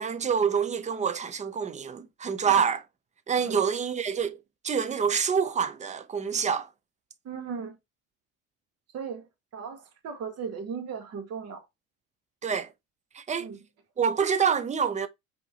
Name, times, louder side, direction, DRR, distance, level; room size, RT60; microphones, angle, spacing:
voice 1, 0.0-2.8 3.3-4.4 4.6-6.7 12.4-12.7 13.1-13.5 14.0-15.1, right 7 dB, 20° right, 0.5 m, -26 dB
voice 2, 7.2-7.8 8.9-11.6 13.4-13.6, right 6 dB, 40° right, 1.3 m, -37 dB
5.2 x 2.9 x 2.8 m
hypercardioid pair, 85°, 37 cm